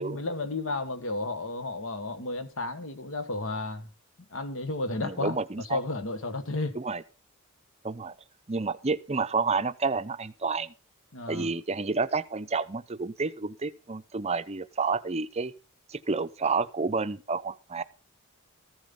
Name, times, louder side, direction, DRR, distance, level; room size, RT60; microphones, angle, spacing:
voice 1, 0.0-3.9 4.3-5.4 5.7-6.8 11.1-11.5, left 2 dB, 60° left, 1.5 m, -32 dB
voice 2, 5.0-5.8 6.7-7.0 7.8-8.1 8.5-10.7 11.3-15.5 15.9-17.8, right 4 dB, 30° right, 0.6 m, -30 dB
14.5 x 7.5 x 5.5 m
head